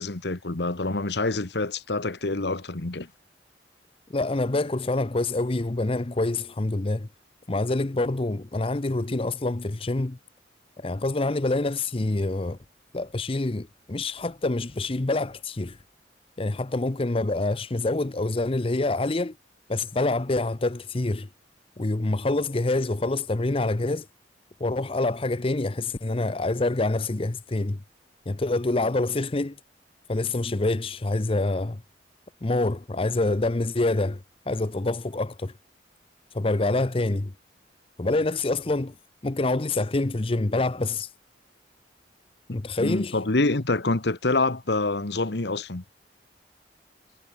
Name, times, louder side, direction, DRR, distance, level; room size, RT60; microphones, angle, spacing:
voice 1, 0.0-3.1 42.8-45.8, left 2 dB, 70° left, 1.3 m, -26 dB
voice 2, 4.1-7.1 7.5-10.2 10.8-12.6 12.9-15.8 16.4-19.4 19.7-21.3 21.8-24.1 24.6-27.8 28.3-29.6 30.1-31.8 32.4-35.5 36.3-37.3 38.0-38.9 39.2-41.1 42.5-43.2, left 2 dB, 30° left, 0.7 m, -26 dB
head